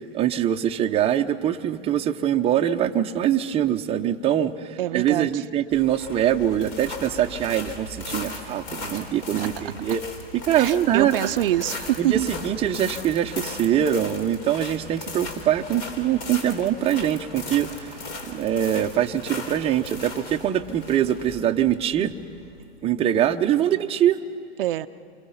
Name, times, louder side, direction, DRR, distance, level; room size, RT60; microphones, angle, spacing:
voice 1, 0.1-10.0 10.4-11.3 12.0-18.0 18.2-22.1 22.8-24.2, right 10 dB, 20° right, 4 dB, 0.8 m, -23 dB
voice 2, 4.8-5.4 8.9-9.0 9.4-9.5 10.5-12.3 24.6-24.9, right 14 dB, 60° right, 11 dB, 0.6 m, -25 dB
sound 1, 5.7-22.6, left 2 dB, 45° left, 3.6 m, -37 dB
28.0 x 24.5 x 5.7 m, 2.3 s
hypercardioid pair, 125°, 32 cm